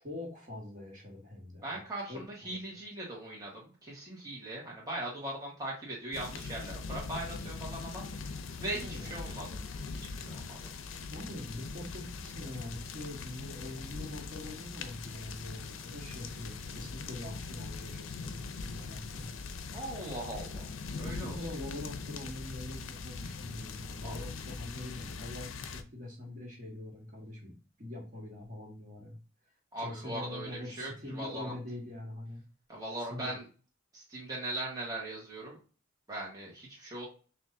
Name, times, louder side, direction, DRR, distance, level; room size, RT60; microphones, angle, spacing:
voice 1, 0.0-2.6 8.8-9.1 11.1-19.3 20.9-27.5 27.8-29.2 29.8-32.4 33.0-33.4, left 1 dB, 40° right, -1 dB, 1.4 m, -44 dB
voice 2, 1.6-8.0 8.6-9.5 9.9-10.6 19.7-20.7 21.0-21.4 24.0-24.2 29.7-31.5 32.7-33.4 33.9-35.6 36.1-37.1, right 1 dB, 20° right, -4 dB, 1.2 m, -40 dB
sound 1, 6.1-25.8, left 4 dB, 75° left, 0.5 m, -41 dB
6.0 x 2.6 x 2.6 m, 0.35 s
head